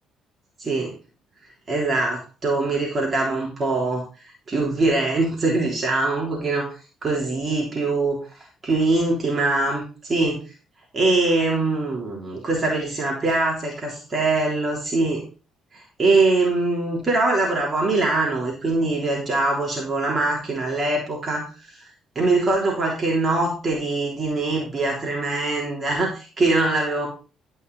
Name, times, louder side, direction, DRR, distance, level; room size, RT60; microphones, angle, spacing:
voice 1, 0.6-0.9 1.7-4.0 4.5-6.7 7.0-8.2 8.6-10.4 10.9-15.2 15.7-21.9 22.1-27.1, right 2 dB, 35° right, -2 dB, 3.5 m, -23 dB
12.5 x 5.5 x 4.0 m, 0.34 s
supercardioid pair, 65°, 0 cm